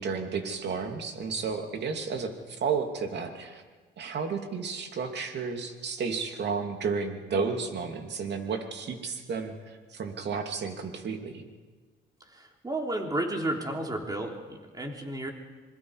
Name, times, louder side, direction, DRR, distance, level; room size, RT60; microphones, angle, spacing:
voice 1, 0.0-3.6 4.0-11.5, right 5 dB, 60° right, 4 dB, 2.7 m, -32 dB
voice 2, 12.3-15.3, right 1 dB, 20° right, 1 dB, 3.5 m, -32 dB
26.5 x 21.5 x 4.9 m, 1.4 s
cardioid pair, 90°, 20 cm